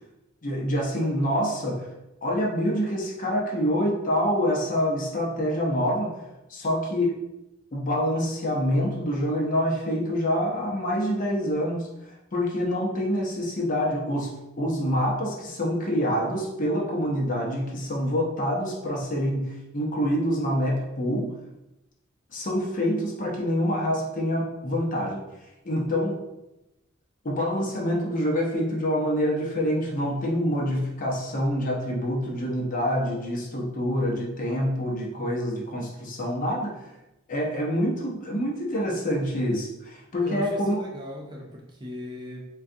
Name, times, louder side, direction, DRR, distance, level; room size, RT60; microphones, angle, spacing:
voice 1, 0.4-1.9 2.2-6.1 6.5-7.2 7.7-14.3 14.6-21.3 22.3-25.2 25.6-26.2 27.2-36.8 37.3-40.8, equal, 40° left, -2 dB, 0.6 m, -26 dB
voice 2, 40.2-42.5, left 1 dB, 20° right, -1 dB, 0.4 m, -38 dB
3.7 x 2.3 x 2.6 m, 0.93 s
head